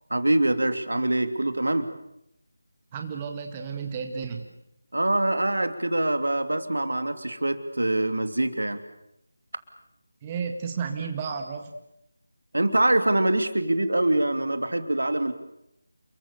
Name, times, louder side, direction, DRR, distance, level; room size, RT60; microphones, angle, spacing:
voice 1, 0.1-1.9 4.9-8.8 12.5-15.3, right 1 dB, 70° right, 9 dB, 2.9 m, -24 dB
voice 2, 2.9-4.5 10.2-11.7, right 6 dB, 20° right, 4 dB, 1.9 m, -32 dB
29.5 x 22.5 x 7.0 m, 0.82 s
figure-of-eight pair, 160°, 0 cm